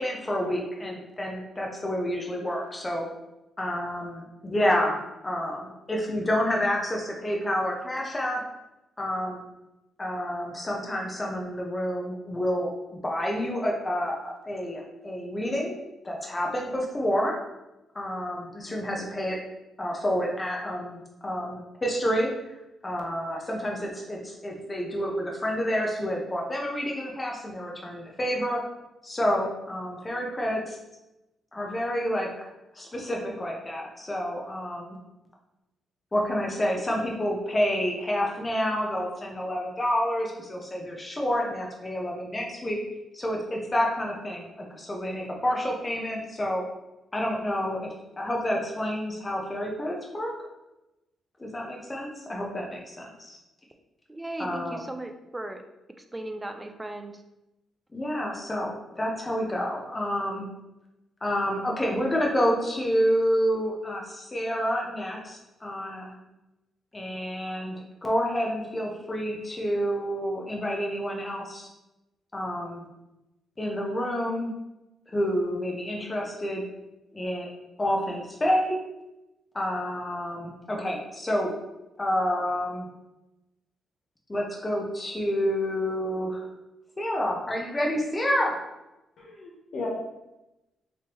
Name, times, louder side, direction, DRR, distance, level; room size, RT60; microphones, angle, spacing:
voice 1, 0.0-3.0 3.6-8.4 9.0-9.4 10.0-15.8 16.0-17.4 17.9-19.4 19.8-22.3 22.8-28.6 29.0-30.8 31.5-32.5 32.7-35.0 36.1-42.8 43.1-46.6 47.1-47.9 48.2-50.3 51.4-53.4 54.4-54.8 57.9-60.5 61.2-66.1 66.9-71.7 72.3-72.8 73.6-74.5 75.1-76.6 77.1-77.5 77.8-78.7 79.5-81.5 82.0-82.9 84.3-86.5 87.0-88.6, equal, 20° left, -1 dB, 0.8 m, -29 dB
voice 2, 54.1-55.6 56.1-57.2, right 1 dB, 15° right, 6 dB, 0.4 m, -37 dB
voice 3, 89.2-89.9, left 4 dB, 60° left, -4 dB, 0.8 m, -36 dB
3.5 x 3.0 x 3.0 m, 0.95 s
cardioid pair, 90°, 0 cm